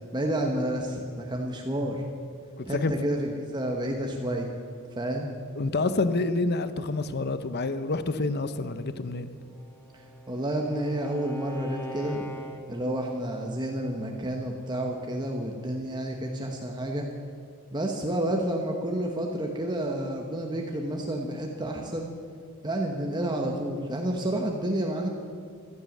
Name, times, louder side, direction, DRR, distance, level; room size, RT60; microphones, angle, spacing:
voice 1, 0.1-2.0 2.7-4.5 5.0-5.3 10.3-12.2 12.7-17.0 17.7-22.1 22.6-25.1, right 1 dB, 20° right, 1 dB, 1.1 m, -30 dB
voice 2, 2.6-2.9 5.6-9.3, left 3 dB, 45° left, 12 dB, 0.7 m, -28 dB
Bowed string instrument, 9.4-13.0, right 1 dB, 10° left, 1.3 m, -43 dB
15.5 x 12.5 x 7.3 m, 2.3 s
head